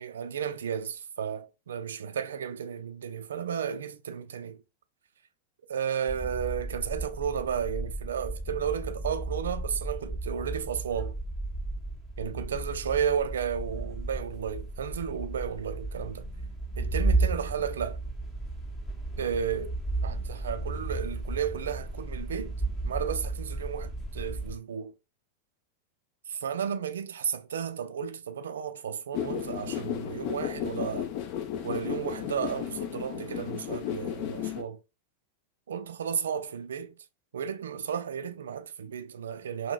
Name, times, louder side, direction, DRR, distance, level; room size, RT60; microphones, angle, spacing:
voice 1, 0.0-4.6 5.7-11.1 12.2-16.3 16.8-18.0 19.2-19.7 20.0-22.5 22.8-24.9 26.3-31.1 31.6-34.8 35.7-36.9 37.3-39.7, right 8 dB, 65° right, 0.3 m, -33 dB
sound 1, 6.1-24.6, right 2 dB, 15° left, 0.8 m, -34 dB
sound 2, 29.1-34.6, left 10 dB, 45° left, 0.4 m, -34 dB
2.9 x 2.8 x 2.3 m
figure-of-eight pair, 90°, 0 cm